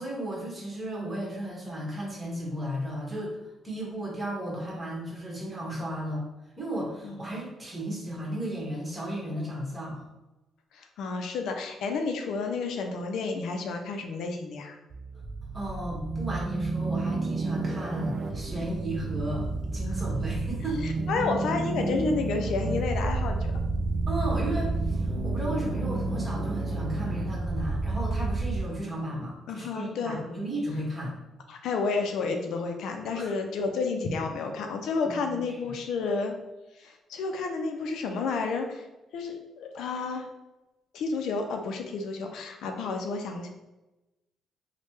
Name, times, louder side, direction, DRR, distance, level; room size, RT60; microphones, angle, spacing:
voice 1, 0.0-3.4 3.6-6.3 6.6-10.1 15.5-21.0 24.1-31.1 33.1-33.3 35.3-35.7, right 1 dB, 20° right, -3 dB, 1.2 m, -34 dB
voice 2, 10.7-14.8 20.8-23.5 29.5-30.2 31.5-36.3 36.8-38.8 39.1-40.3 40.9-43.5, left 4 dB, 80° left, 4 dB, 0.4 m, -31 dB
sound 1, 14.9-28.6, right 3 dB, 45° right, 0.4 m, -30 dB
3.1 x 2.1 x 3.1 m, 1.0 s
cardioid pair, 90°, 0 cm